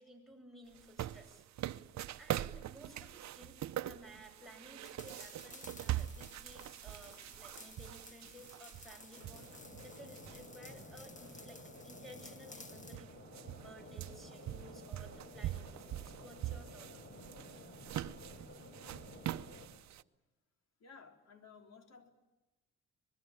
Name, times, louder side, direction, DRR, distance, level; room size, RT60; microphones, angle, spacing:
voice 1, 0.0-1.9 2.2-17.2, equal, ahead, 5 dB, 7.9 m, -56 dB
sound 1, 0.7-10.8 11.2-11.3 12.2-12.3 12.6-20.0, right 13 dB, 65° right, 0.8 m, -43 dB
sound 2, 4.8-13.0, left 3 dB, 25° left, 1.7 m, -56 dB
sound 3, 9.1-19.6, left 1 dB, 40° left, 6.3 m, -53 dB
voice 2, 20.8-22.1, left 5 dB, 60° left, 5 dB, 3.7 m, -56 dB
24.0 x 21.0 x 8.9 m, 1.1 s
cardioid pair, 90°, 30 cm